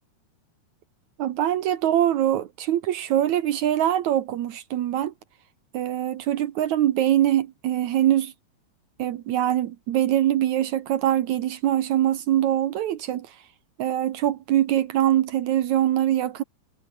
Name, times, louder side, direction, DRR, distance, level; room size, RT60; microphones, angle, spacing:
voice 1, 1.2-5.1 5.7-8.3 9.0-13.3 13.8-16.4, right 12 dB, 70° right, 1.7 m, -23 dB
omnidirectional pair, 4.8 m